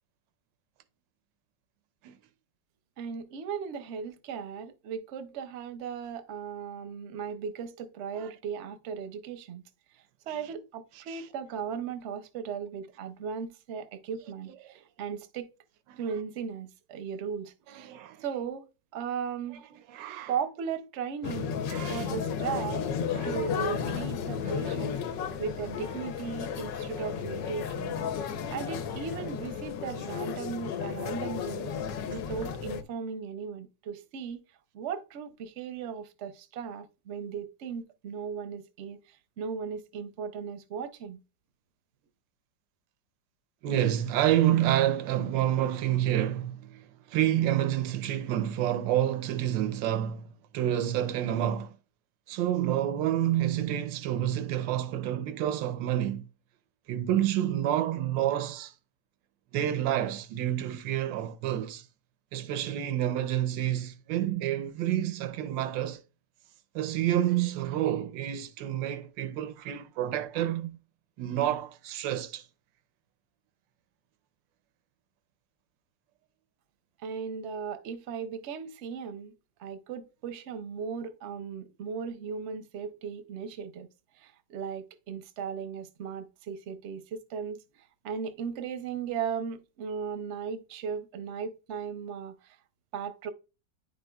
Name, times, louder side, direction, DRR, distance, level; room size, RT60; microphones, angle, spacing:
voice 1, 3.0-9.6 9.9-15.5 16.0-17.9 18.2-18.6 18.9-19.6 20.3-21.5 21.9-22.9 23.2-25.0 25.4-28.0 28.5-31.7 32.1-34.4 34.7-41.2 77.0-79.3 79.6-83.9 84.2-92.6 92.9-93.3, right 6 dB, 60° right, 0.8 m, -37 dB
voice 2, 17.8-18.2 19.9-20.3 21.7-22.1 23.1-23.3 24.4-24.8 43.6-51.7 52.3-56.3 56.9-58.7 59.5-61.9 62.3-66.0 66.7-70.8 71.2-72.5, right 12 dB, 85° right, 1.3 m, -29 dB
sound 1, 21.2-32.8, left 7 dB, 85° left, 1.4 m, -33 dB
9.8 x 5.3 x 2.2 m
omnidirectional pair, 1.9 m